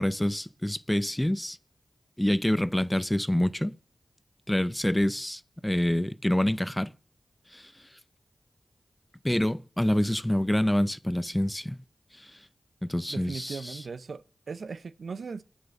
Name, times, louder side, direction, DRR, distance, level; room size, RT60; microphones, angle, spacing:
voice 1, 0.0-1.6 2.2-3.7 4.5-6.9 7.5-7.7 9.2-11.8 12.2-12.3 12.8-13.8, left 1 dB, 10° left, 0.7 m, -27 dB
voice 2, 13.1-15.4, right 5 dB, 80° right, 0.6 m, -38 dB
9.9 x 9.2 x 8.0 m
cardioid pair, 40°, 0 cm